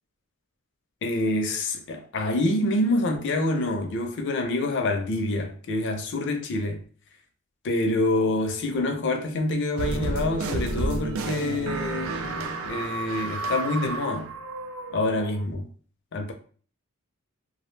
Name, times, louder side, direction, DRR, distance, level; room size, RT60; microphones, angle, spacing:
voice 1, 1.0-6.8 7.6-14.3 14.9-15.7 16.1-16.3, left 2 dB, 55° left, 0.4 m, -26 dB
sound 1, 9.8-15.4, right 3 dB, 65° right, 0.3 m, -31 dB
2.4 x 2.0 x 3.1 m
head